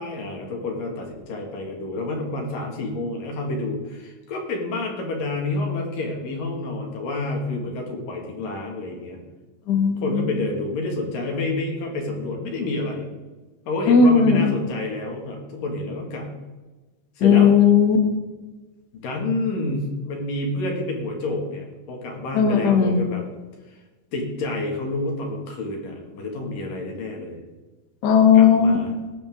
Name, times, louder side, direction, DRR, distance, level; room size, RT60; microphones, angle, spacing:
voice 1, 0.0-9.2 10.0-13.1 13.7-16.3 17.2-17.5 18.9-23.3 23.7-23.8 24.1-27.4 28.3-28.9, left 2 dB, 65° left, 1 dB, 3.7 m, -29 dB
voice 2, 9.7-10.4 13.9-14.5 17.2-18.1 22.3-23.0 28.0-28.8, left 6 dB, 85° left, 4 dB, 0.9 m, -16 dB
18.5 x 8.5 x 3.7 m, 1.2 s
omnidirectional pair, 4.3 m